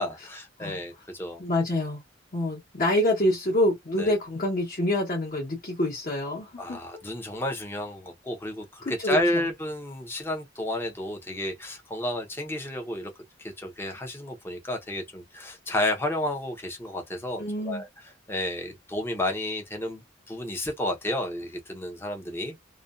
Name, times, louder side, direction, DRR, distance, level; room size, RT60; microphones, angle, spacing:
voice 1, 0.0-1.4 4.0-4.1 6.6-13.1 13.4-17.9 18.3-20.0 20.3-22.5, left 1 dB, 10° left, 0.6 m, -31 dB
voice 2, 1.4-2.0 2.3-6.8 8.8-9.4 17.4-17.8, left 1 dB, 45° left, 0.9 m, -26 dB
2.5 x 2.1 x 2.4 m
head